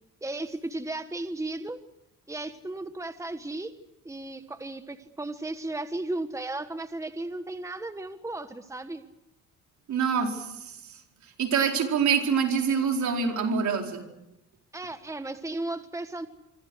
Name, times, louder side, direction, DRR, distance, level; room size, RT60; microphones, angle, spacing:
voice 1, 0.2-1.8 2.3-3.7 4.0-9.0 14.7-16.3, right 2 dB, 10° right, 9 dB, 1.4 m, -35 dB
voice 2, 9.9-11.0 11.4-14.1, right 6 dB, 70° right, 3 dB, 4.6 m, -26 dB
25.5 x 25.5 x 6.4 m, 0.89 s
cardioid pair, 90°, 30 cm